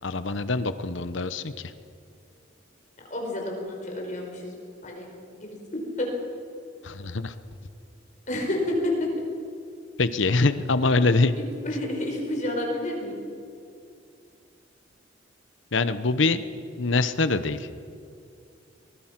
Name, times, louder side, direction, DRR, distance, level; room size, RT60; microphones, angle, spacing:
voice 1, 0.0-1.7 6.8-7.3 10.0-11.4 15.7-16.4 16.8-17.7, left 3 dB, 75° left, 12 dB, 0.9 m, -24 dB
voice 2, 3.1-4.5 4.8-5.1 5.4-6.1 8.3-9.1 11.4-13.2, left 1 dB, 40° left, 0 dB, 4.9 m, -30 dB
23.5 x 20.0 x 6.0 m, 2.4 s
head